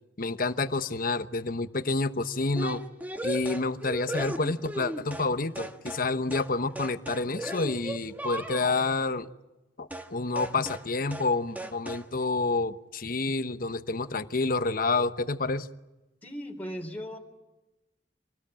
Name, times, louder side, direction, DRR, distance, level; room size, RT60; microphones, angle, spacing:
voice 1, 0.2-2.8 3.2-9.3 9.8-15.7, left 3 dB, 50° left, 11 dB, 1.0 m, -29 dB
sound 1, 2.6-5.3 5.6-6.1 6.3-6.5 6.8-8.8 9.9-10.1 10.4-10.9 11.1-11.3 11.6-12.1, right 1 dB, 10° right, 1.6 m, -36 dB
voice 2, 16.2-17.2, equal, 10° left, 0 dB, 3.4 m, -37 dB
27.0 x 19.5 x 8.9 m, 1.0 s
head